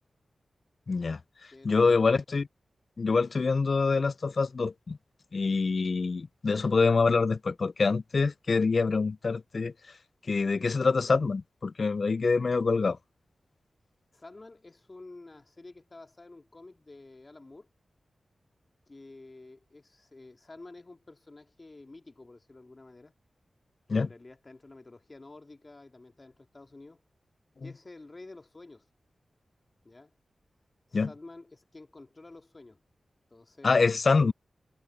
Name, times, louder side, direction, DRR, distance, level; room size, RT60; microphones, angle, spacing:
voice 1, 0.9-1.2 1.6-2.5 3.0-5.0 5.3-9.7 10.3-13.0 23.9-24.1 27.6-27.7 30.9-31.1 33.6-34.3, left 4 dB, 60° left, 0.3 m, -25 dB
voice 2, 1.5-2.1 14.1-17.7 18.9-23.1 23.9-27.0 27.6-28.9 29.8-30.2 30.9-32.8 33.3-33.7, left 2 dB, 40° left, 2.5 m, -50 dB
cardioid pair, 40°, 0 cm